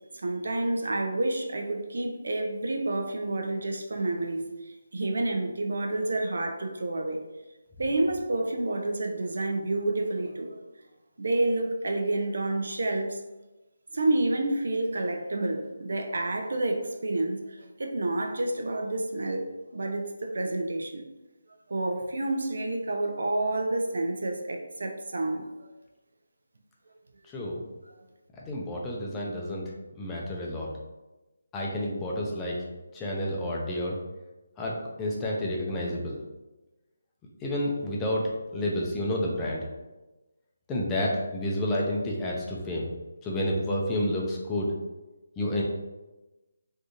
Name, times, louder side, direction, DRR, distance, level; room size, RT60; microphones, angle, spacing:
voice 1, 0.2-7.2 7.8-10.6 11.2-13.2 13.9-21.0 21.7-25.4, right 2 dB, 70° right, 3 dB, 0.5 m, -29 dB
voice 2, 28.4-29.6 30.0-30.7 31.5-32.6 32.9-34.0 34.6-36.2 37.4-39.6 40.7-42.9 43.2-44.7 45.4-45.6, left 1 dB, 15° left, -3 dB, 0.5 m, -30 dB
3.5 x 2.7 x 2.6 m, 1.1 s
figure-of-eight pair, 160°, 0 cm